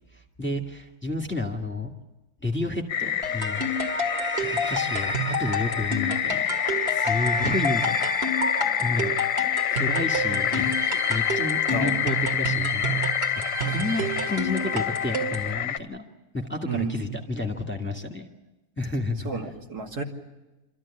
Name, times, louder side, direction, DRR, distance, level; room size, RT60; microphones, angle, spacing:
voice 1, 0.1-1.9 2.4-3.7 4.4-6.5 6.9-8.0 8.8-9.2 9.7-13.1 13.5-16.0 16.3-18.3 18.8-19.3, left 2 dB, 5° left, 3 dB, 1.8 m, -31 dB
sound 1, 2.9-15.8, left 11 dB, 60° left, 1.3 m, -27 dB
sound 2, 3.2-15.5, right 1 dB, 40° right, 2.3 m, -29 dB
voice 2, 11.7-12.1 16.6-17.2 19.2-20.0, right 4 dB, 90° right, 1 dB, 3.0 m, -32 dB
26.5 x 13.5 x 9.9 m, 1.1 s
omnidirectional pair, 1.6 m